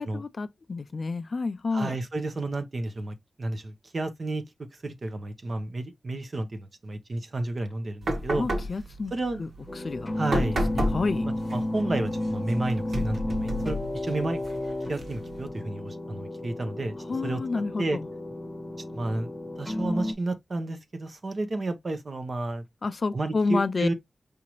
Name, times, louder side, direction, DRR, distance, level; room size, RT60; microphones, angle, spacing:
voice 1, 0.0-1.9 8.4-9.1 9.4-9.5 9.8-11.3 17.1-18.0 22.8-23.9, left 3 dB, 50° left, 0.4 m, -29 dB
voice 2, 1.7-8.5 9.1-9.4 10.2-10.6 11.2-14.4 14.9-17.0 17.2-17.4 17.8-18.0 18.9-19.3 19.6-22.6 23.1-23.9, right 2 dB, 45° right, 0.9 m, -31 dB
sound 1, 8.0-15.5, equal, 65° right, 1.6 m, -33 dB
sound 2, 9.7-20.1, left 1 dB, 15° left, 1.0 m, -32 dB
4.9 x 2.8 x 3.0 m
wide cardioid pair, 120°, 0 cm